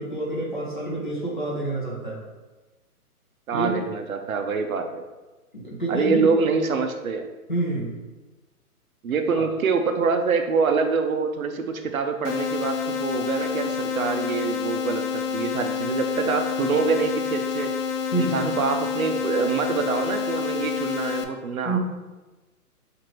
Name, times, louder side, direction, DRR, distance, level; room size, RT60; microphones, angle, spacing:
voice 1, 0.0-2.2 3.5-3.8 5.5-6.3 7.5-7.9 9.4-9.5 18.1-18.5 21.6-21.8, right 2 dB, 35° left, -5 dB, 0.6 m, -27 dB
voice 2, 3.5-5.0 5.9-7.2 9.0-17.7 18.2-21.8, right 5 dB, 65° right, 6 dB, 0.5 m, -25 dB
sound 1, 12.2-21.2, left 7 dB, 85° left, 0.6 m, -28 dB
4.5 x 2.5 x 3.0 m, 1.2 s
hypercardioid pair, 175°, 46 cm